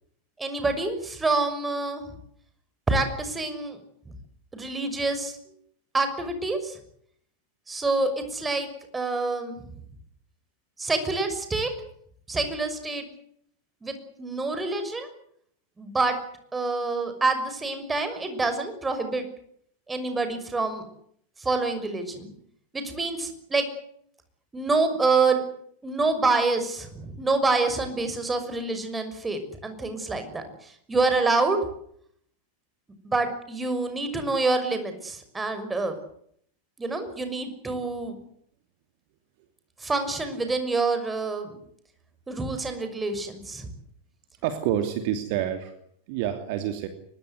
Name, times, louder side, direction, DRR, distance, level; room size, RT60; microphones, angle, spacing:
voice 1, 0.4-2.0 2.9-3.8 4.5-5.4 5.9-6.8 7.7-8.7 8.9-9.6 10.8-11.7 12.3-13.1 13.8-15.1 15.8-16.2 16.5-19.2 19.9-20.8 21.4-22.3 22.7-23.7 24.5-25.4 25.8-31.6 33.0-36.0 36.8-38.2 39.8-41.6 42.3-43.7, right 3 dB, 10° right, 8 dB, 6.1 m, -27 dB
voice 2, 44.4-45.7 46.1-46.9, right 10 dB, 45° right, 8 dB, 2.9 m, -27 dB
24.5 x 20.5 x 8.2 m, 0.67 s
figure-of-eight pair, 90°, 0 cm